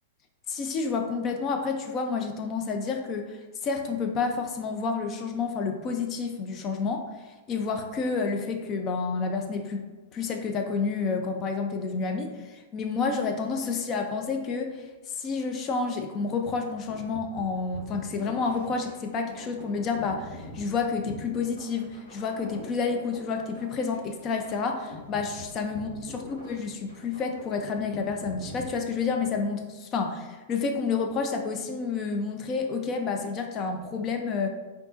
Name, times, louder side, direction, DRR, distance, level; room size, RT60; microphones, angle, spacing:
voice 1, 0.5-7.1 7.5-9.9 10.1-34.5, left 4 dB, 35° left, 5 dB, 0.5 m, -29 dB
sound 1, 16.9-29.4, left 1 dB, 85° left, 1.3 m, -45 dB
4.6 x 2.8 x 2.5 m, 1.2 s
hypercardioid pair, 110°, 0 cm